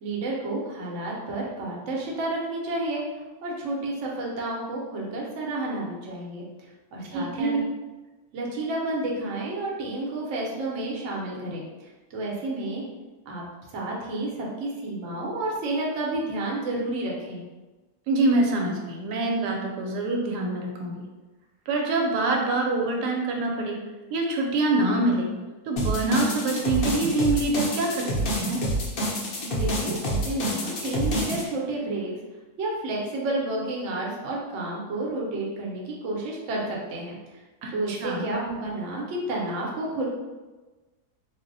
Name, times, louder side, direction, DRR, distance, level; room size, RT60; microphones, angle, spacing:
voice 1, 0.0-3.0 3.4-6.5 6.9-7.6 8.3-11.6 12.1-12.8 13.3-13.4 13.7-17.4 29.4-32.1 32.6-37.2 37.7-40.1, right 2 dB, 60° right, -3 dB, 0.9 m, -30 dB
voice 2, 7.1-7.5 18.1-21.1 21.7-23.8 24.1-25.3 25.7-28.6 37.6-38.3, right 2 dB, 85° right, 0 dB, 1.1 m, -25 dB
sound 1, 25.8-31.4, equal, 65° left, 0.5 m, -27 dB
2.6 x 2.0 x 3.8 m, 1.2 s
omnidirectional pair, 1.7 m